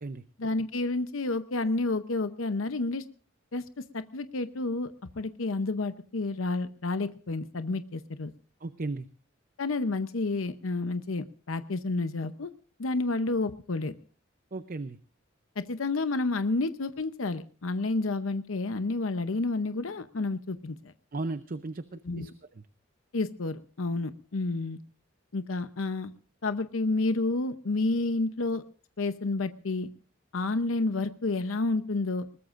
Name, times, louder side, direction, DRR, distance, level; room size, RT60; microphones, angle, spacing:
voice 1, 0.4-3.0 3.5-3.6 3.9-8.3 9.6-12.5 12.8-13.9 15.6-20.9 22.0-22.3 23.1-24.8 25.3-26.1 26.4-28.6 29.0-29.9 30.3-32.4, left 3 dB, 90° left, 11 dB, 0.8 m, -30 dB
voice 2, 8.6-9.1 14.5-15.0 21.1-22.3, right 3 dB, 45° right, 12 dB, 0.6 m, -35 dB
21.0 x 20.0 x 2.5 m, 0.40 s
head